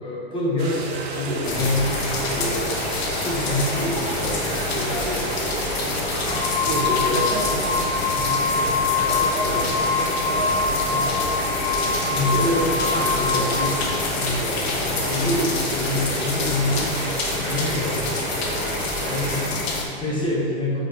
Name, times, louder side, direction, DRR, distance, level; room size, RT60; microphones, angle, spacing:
voice 1, 0.0-5.3 6.3-7.2 9.5-9.7 12.1-13.8 14.2-17.0 17.4-18.5 19.0-20.8, left 1 dB, 15° left, -5 dB, 1.2 m, -27 dB
sound 1, 0.6-19.5, right 4 dB, 70° right, 1.1 m, -32 dB
sound 2, 1.4-19.8, left 3 dB, 70° left, 1.2 m, -27 dB
sound 3, 5.1-5.3 6.1-13.8, left 5 dB, 45° left, 0.6 m, -25 dB
voice 2, 6.7-10.6 10.9-11.3 17.8-18.1 18.9-19.1, right 3 dB, 50° right, 0 dB, 0.9 m, -32 dB
5.1 x 4.4 x 4.6 m, 2.3 s
hypercardioid pair, 140°, 32 cm